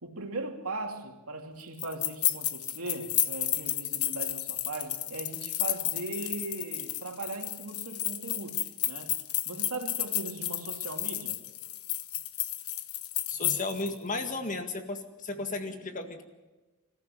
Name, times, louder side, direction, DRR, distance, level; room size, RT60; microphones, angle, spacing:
voice 1, 0.0-9.2 9.5-11.4, right 2 dB, 80° right, 2.7 m, -39 dB
sound 1, 1.8-13.9, left 13 dB, 85° left, 1.2 m, -32 dB
voice 2, 13.3-16.2, left 3 dB, 35° left, 1.9 m, -34 dB
26.5 x 14.5 x 7.7 m
head